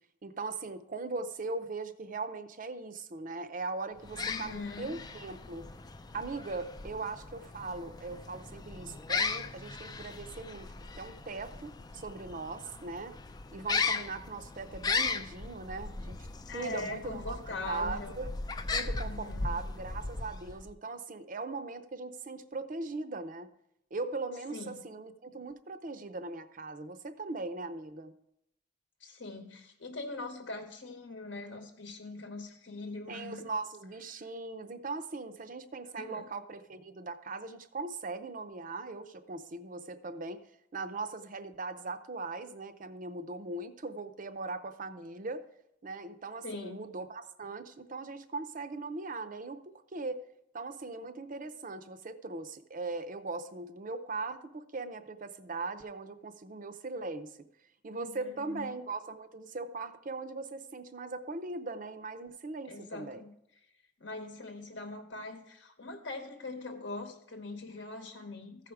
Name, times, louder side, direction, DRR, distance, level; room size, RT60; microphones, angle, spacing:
voice 1, 0.2-5.7 6.1-13.2 13.5-16.2 16.5-17.4 17.7-18.3 18.7-23.5 23.9-28.1 33.1-40.4 40.7-45.4 45.8-50.3 50.5-57.3 57.8-63.2, right 3 dB, 45° right, 10 dB, 0.6 m, -39 dB
sound 1, 4.0-20.7, left 4 dB, 20° left, 0.3 m, -37 dB
voice 2, 4.1-5.0 16.5-18.2 18.8-19.6 24.5-24.8 29.0-33.5 34.1-34.2 35.9-36.3 46.4-46.9 57.9-58.7 62.7-63.3 64.0-68.7, left 2 dB, 65° left, 5 dB, 0.9 m, -42 dB
14.5 x 5.0 x 4.7 m, 0.79 s
head